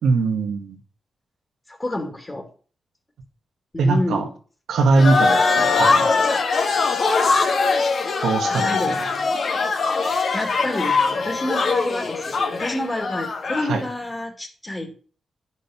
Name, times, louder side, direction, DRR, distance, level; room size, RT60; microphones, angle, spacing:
voice 1, 0.0-0.8 3.8-4.3 4.7-6.6 8.2-9.1 13.7-13.8, right 3 dB, 90° right, 4 dB, 1.8 m, -21 dB
voice 2, 1.7-2.5 3.7-4.3 5.6-5.8 8.4-9.3 10.3-14.9, left 1 dB, 20° left, 2 dB, 2.5 m, -29 dB
sound 1, 5.0-13.7, left 4 dB, 65° left, 1.8 m, -21 dB
10.5 x 6.5 x 5.8 m, 0.40 s
cardioid pair, 70°, 0 cm